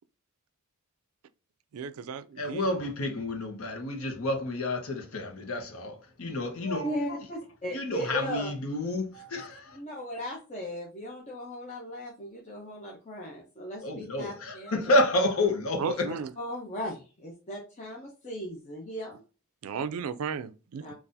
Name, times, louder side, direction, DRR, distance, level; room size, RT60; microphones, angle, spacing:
voice 1, 1.7-2.6 15.8-16.3 19.6-20.9, right 6 dB, 80° right, 0.4 m, -34 dB
voice 2, 2.4-7.2 7.7-9.8 13.8-16.2, left 1 dB, 75° left, 0.9 m, -29 dB
voice 3, 6.8-8.5 9.7-14.8 16.1-19.2 20.8-20.9, equal, 35° left, 0.7 m, -37 dB
3.9 x 2.5 x 2.6 m
head